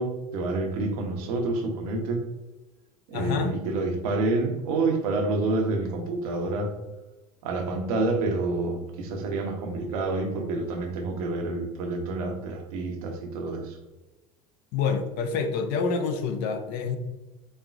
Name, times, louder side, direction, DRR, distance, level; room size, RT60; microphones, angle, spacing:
voice 1, 0.0-2.2 3.1-6.8 7.4-13.8, right 2 dB, 65° right, 4 dB, 0.9 m, -28 dB
voice 2, 3.1-3.5 14.7-17.0, left 5 dB, 55° left, 7 dB, 0.6 m, -27 dB
4.4 x 3.6 x 2.4 m, 1.1 s
hypercardioid pair, 75°, 20 cm